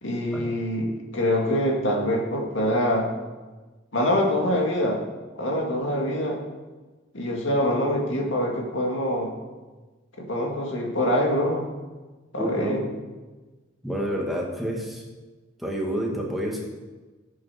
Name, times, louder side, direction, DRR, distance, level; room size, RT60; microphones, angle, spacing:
voice 1, 0.0-3.1 3.9-5.0 5.4-6.4 7.1-9.3 10.2-11.7 12.3-12.8, equal, 75° left, 0 dB, 2.2 m, -25 dB
voice 2, 12.4-12.8 13.8-15.0 15.6-16.6, equal, ahead, -2 dB, 1.9 m, -28 dB
9.3 x 8.4 x 5.9 m, 1.2 s
head